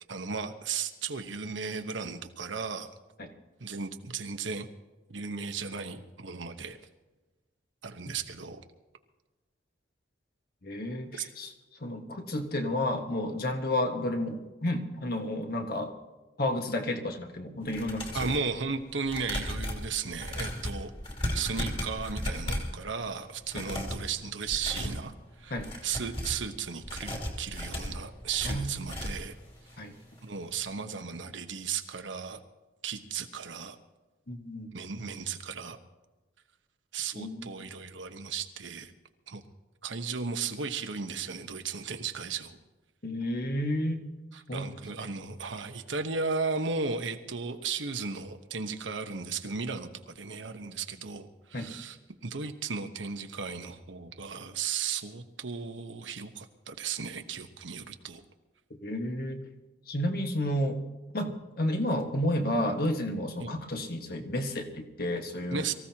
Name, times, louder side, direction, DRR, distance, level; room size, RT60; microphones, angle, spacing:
voice 1, 0.1-2.9 3.6-4.7 5.1-6.8 7.8-8.6 11.1-11.3 18.1-20.9 21.3-25.5 25.8-29.4 30.2-32.4 32.8-33.8 34.7-35.8 36.9-38.9 39.3-39.4 39.8-42.6 44.3-52.0 52.2-58.2 63.4-63.5 65.5-65.7, right 5 dB, 85° right, 7 dB, 1.1 m, -35 dB
voice 2, 10.6-11.5 11.8-15.9 16.4-18.4 23.5-23.7 25.5-25.7 28.4-28.8 29.8-29.9 34.3-34.7 37.1-37.5 43.0-44.0 44.5-44.7 51.5-51.7 58.8-59.4 59.9-60.8 61.1-65.7, left 1 dB, 55° left, 4 dB, 1.6 m, -31 dB
sound 1, 17.6-18.4 19.0-22.8 23.4-24.1 24.5-25.0 25.5-26.4 26.8-29.3 29.7-29.8 30.1-30.2, left 1 dB, 30° left, 2.9 m, -35 dB
24.0 x 15.0 x 2.9 m, 1.2 s
head